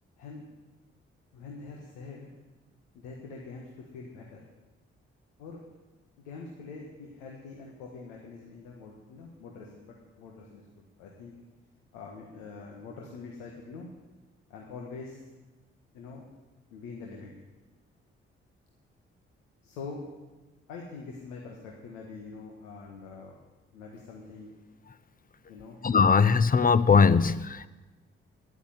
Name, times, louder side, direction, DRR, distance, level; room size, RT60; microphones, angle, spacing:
voice 1, 1.3-2.3 2.9-4.5 5.4-5.6 6.2-11.3 11.9-13.9 14.5-15.2 15.9-16.2 16.7-17.3 19.6-20.0 20.7-23.4 23.7-24.6 25.5-25.8, left 4 dB, 85° left, -1 dB, 1.5 m, -44 dB
voice 2, 25.8-27.7, left 5 dB, 30° left, 16 dB, 0.7 m, -20 dB
10.0 x 8.4 x 9.6 m, 1.2 s
hypercardioid pair, 40°, 30 cm